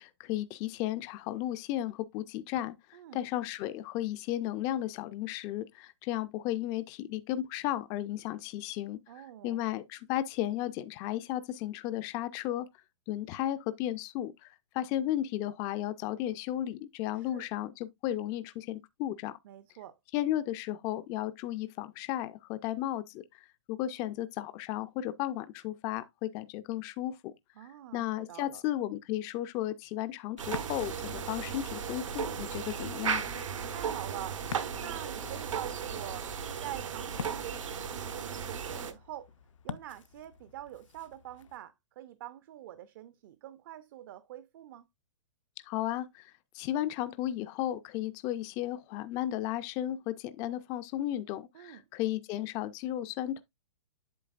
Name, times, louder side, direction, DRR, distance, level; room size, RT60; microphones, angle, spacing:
voice 1, 0.0-12.7 13.1-19.4 20.1-27.3 27.6-33.2 45.6-53.4, left 13 dB, 20° left, 0.4 m, -34 dB
voice 2, 2.9-3.2 9.1-9.6 17.1-17.5 19.4-20.0 27.6-28.6 33.7-34.4 34.8-36.3 36.6-39.3 39.6-44.9 51.5-51.9, right 13 dB, 45° right, 0.6 m, -45 dB
Ocean, 30.4-41.6, left 7 dB, 80° left, 0.7 m, -48 dB
sound 1, 30.4-38.9, right 7 dB, 85° right, 1.4 m, -36 dB
8.4 x 6.8 x 2.4 m
hypercardioid pair, 155°, 16 cm